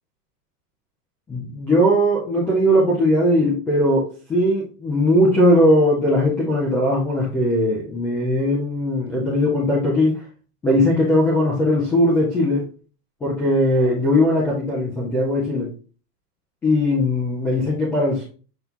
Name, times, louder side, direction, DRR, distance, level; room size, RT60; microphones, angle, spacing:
voice 1, 1.3-10.2 10.6-12.7 13.2-15.7 16.6-18.2, left 1 dB, 5° left, -5 dB, 0.4 m, -19 dB
8.0 x 5.3 x 2.9 m, 0.37 s
supercardioid pair, 170°, 46 cm